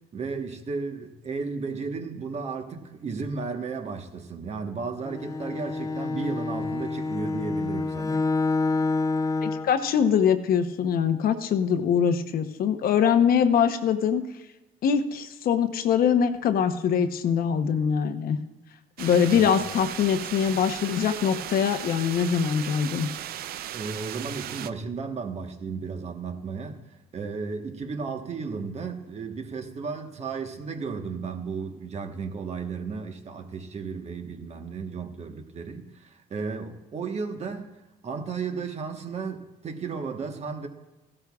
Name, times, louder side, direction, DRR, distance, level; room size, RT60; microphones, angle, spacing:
voice 1, 0.1-8.2 19.3-19.6 23.7-26.8 27.1-37.7 38.0-40.7, right 5 dB, 40° right, 5 dB, 1.2 m, -34 dB
Bowed string instrument, 5.0-9.8, left 3 dB, 20° left, 0.5 m, -28 dB
voice 2, 9.4-14.2 14.8-18.4 19.0-23.1, left 7 dB, 60° left, 9 dB, 0.9 m, -23 dB
sound 1, 19.0-24.7, right 11 dB, 65° right, 0.5 m, -36 dB
15.0 x 12.5 x 2.4 m, 1.0 s
cardioid pair, 110°, 17 cm